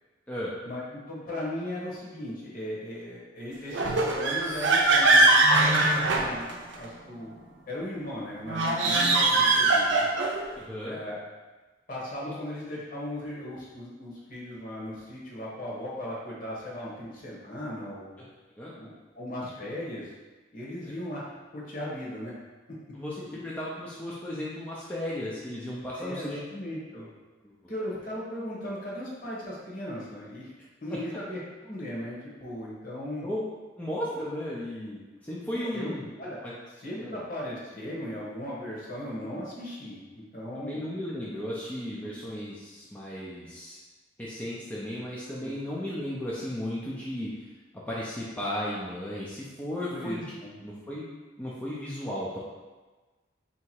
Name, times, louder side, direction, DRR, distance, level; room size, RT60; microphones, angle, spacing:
voice 1, 0.6-10.1 10.8-11.2 11.9-18.1 18.8-20.1 20.5-21.2 21.5-22.3 26.0-27.1 27.7-30.5 30.8-33.3 35.5-36.4 36.8-40.8 42.0-42.1 45.4-45.5 49.9-50.6, left 1 dB, 45° left, -5 dB, 1.2 m, -37 dB
sound 1, 3.7-6.8 8.4-10.5, right 2 dB, 80° right, 0.6 m, -22 dB
voice 2, 10.6-11.0 12.2-12.3 18.6-18.7 22.9-26.4 27.4-27.5 33.2-33.4 33.8-36.1 36.4-36.5 37.0-37.2 40.7-43.8 44.2-47.5 47.7-50.2 50.6-51.1 51.4-52.4, left 1 dB, 10° left, -7 dB, 0.5 m, -35 dB
3.3 x 2.9 x 4.6 m, 1.2 s
head